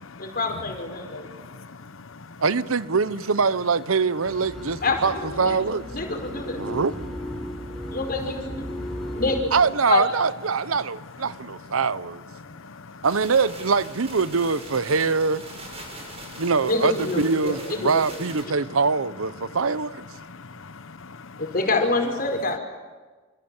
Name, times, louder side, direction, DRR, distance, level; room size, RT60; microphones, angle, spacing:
voice 1, 0.2-1.3 4.8-6.6 7.9-8.8 9.1-9.5 9.9-10.0 16.6-18.0 21.4-22.6, left 3 dB, 45° left, 5.4 m, -26 dB
voice 2, 1.2-2.3 7.4-8.0 8.8-9.2 12.4-13.0 15.8-16.4 20.2-21.4, left 4 dB, 70° left, 1.0 m, -44 dB
voice 3, 2.4-5.8 6.6-7.2 9.5-12.2 13.0-15.4 16.4-20.0, right 4 dB, 85° right, 0.9 m, -23 dB
sound 1, 4.2-9.4, equal, ahead, 4.6 m, -35 dB
sound 2, 13.0-18.4, right 2 dB, 30° right, 7.1 m, -42 dB
27.5 x 27.5 x 7.2 m
head